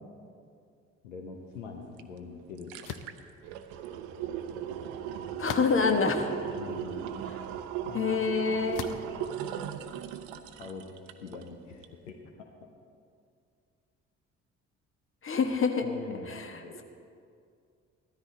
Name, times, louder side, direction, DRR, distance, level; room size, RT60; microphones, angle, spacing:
voice 1, 1.0-2.9 3.8-3.9 6.5-7.1 7.9-8.3 8.6-9.0 9.5-9.9 10.6-10.8 11.2-12.2 15.4-15.6 15.8-16.8, left 5 dB, 80° left, 4 dB, 0.9 m, -44 dB
sound 1, 2.0-2.1 2.4-11.5 11.8-11.9, right 9 dB, 65° right, 0.7 m, -37 dB
sound 2, 2.8-3.2 5.4-6.0 6.7-6.8 8.7-9.1, left 9 dB, 55° left, 0.7 m, -38 dB
voice 2, 5.4-6.3 7.9-8.8 15.2-15.8, left 5 dB, 35° left, 5 dB, 1.4 m, -26 dB
15.5 x 13.5 x 4.0 m, 2.3 s
figure-of-eight pair, 45°, 37 cm